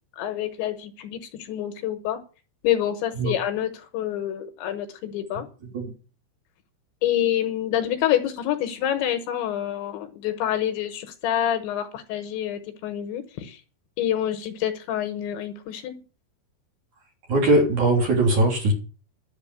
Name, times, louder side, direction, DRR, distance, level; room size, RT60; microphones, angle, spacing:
voice 1, 0.2-2.2 2.6-5.5 7.0-13.6 14.0-16.0, left 11 dB, 75° left, 8 dB, 3.2 m, -27 dB
voice 2, 17.3-18.7, right 2 dB, 40° right, 1 dB, 4.5 m, -20 dB
11.0 x 7.6 x 9.5 m, 0.36 s
omnidirectional pair, 5.8 m